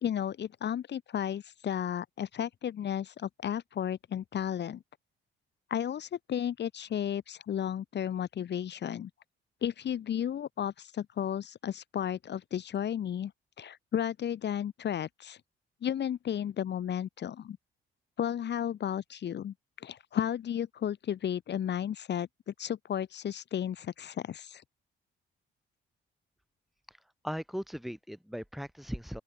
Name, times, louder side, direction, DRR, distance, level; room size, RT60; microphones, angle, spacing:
voice 1, 0.0-4.8 5.7-9.1 9.6-13.3 13.6-15.4 15.8-17.6 18.2-24.6, left 9 dB, 60° left, 2.4 m, -33 dB
voice 2, 27.2-29.2, equal, ahead, 7.4 m, -38 dB
open air
cardioid pair, 90°, 20 cm